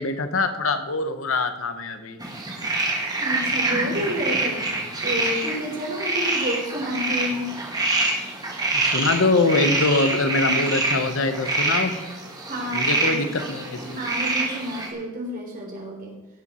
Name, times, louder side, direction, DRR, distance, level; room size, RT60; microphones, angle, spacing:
voice 1, 0.0-2.2 8.7-11.9 12.7-14.0, left 3 dB, 70° left, 8 dB, 1.0 m, -23 dB
sound 1, 2.2-14.9, right 2 dB, 20° right, 1.8 m, -26 dB
voice 2, 3.2-4.7 5.0-7.6 12.4-13.3 13.9-16.1, equal, 45° right, -1 dB, 3.6 m, -30 dB
17.0 x 7.5 x 4.4 m, 1.0 s
head